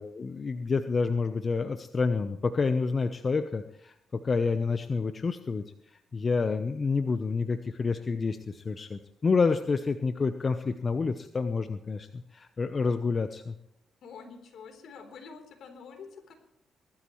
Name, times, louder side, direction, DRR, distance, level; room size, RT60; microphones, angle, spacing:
voice 1, 0.0-13.5, left 4 dB, 40° left, 9 dB, 0.8 m, -29 dB
voice 2, 14.0-16.3, left 5 dB, 70° left, 5 dB, 3.7 m, -47 dB
20.5 x 12.5 x 3.2 m, 0.78 s
cardioid pair, 85°, 0 cm